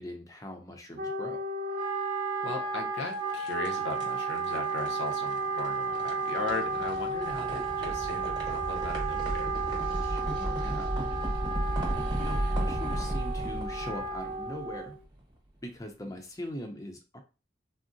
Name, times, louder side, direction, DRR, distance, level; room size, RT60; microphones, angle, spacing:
voice 1, 0.0-1.4 10.1-11.0 11.9-15.0 15.6-17.2, left 1 dB, 20° left, 4 dB, 0.5 m, -41 dB
Wind instrument woodwind instrument, 1.0-15.0, right 4 dB, 50° right, 0.5 m, -33 dB
voice 2, 2.4-9.5, left 3 dB, 70° left, 1 dB, 0.7 m, -38 dB
sound 1, 3.0-15.1, right 1 dB, 25° right, 0.9 m, -35 dB
3.6 x 2.0 x 2.6 m, 0.31 s
head